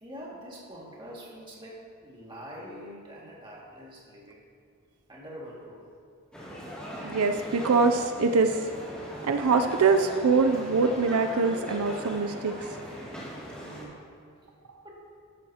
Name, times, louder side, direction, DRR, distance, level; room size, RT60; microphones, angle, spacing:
voice 1, 0.0-4.4 5.1-5.8 13.4-14.0 14.8-15.0, equal, 20° right, -5 dB, 2.0 m, -44 dB
sound 1, 6.3-13.8, equal, 5° left, 2.4 m, -39 dB
voice 2, 7.0-8.6 9.2-12.5, right 4 dB, 80° right, 6 dB, 0.5 m, -23 dB
13.0 x 12.5 x 2.9 m, 2.3 s
head